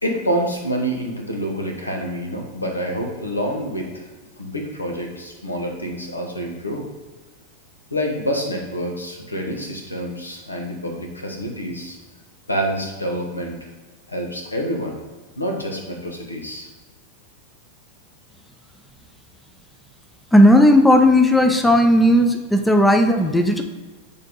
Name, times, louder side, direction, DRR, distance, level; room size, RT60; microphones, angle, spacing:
voice 1, 0.0-4.1 4.4-6.9 7.9-12.0 12.5-13.7 14.1-15.0 15.4-16.7, equal, 80° left, 2 dB, 1.1 m, -27 dB
voice 2, 20.3-23.6, left 1 dB, 5° left, 5 dB, 0.6 m, -14 dB
8.8 x 3.6 x 3.9 m, 1.3 s
figure-of-eight pair, 90°, 0 cm